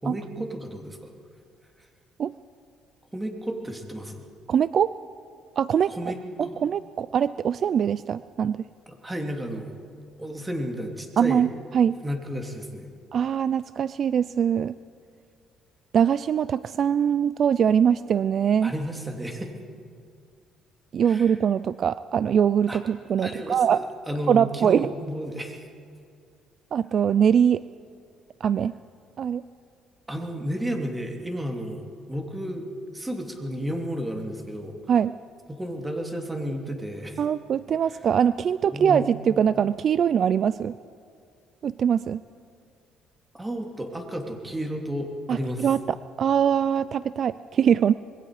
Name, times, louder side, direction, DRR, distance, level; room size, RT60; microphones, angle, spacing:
voice 1, 0.0-1.1 3.1-4.3 5.9-6.6 9.0-9.8 10.2-11.5 12.0-12.9 18.6-19.5 21.0-21.4 22.7-22.8 23.2-25.7 30.1-34.8 35.5-37.2 37.9-38.0 38.7-39.1 43.3-45.7, equal, 10° right, 2 dB, 3.0 m, -32 dB
voice 2, 4.5-4.9 5.6-6.1 6.6-8.7 11.2-12.0 13.1-14.7 15.9-18.7 20.9-23.8 24.3-24.9 26.7-27.6 28.4-28.8 29.2-29.4 34.9-35.1 37.2-40.7 41.6-42.2 45.3-45.8 46.2-47.9, right 8 dB, 50° right, 16 dB, 0.4 m, -22 dB
26.0 x 21.5 x 5.0 m, 2.3 s
cardioid pair, 100°, 0 cm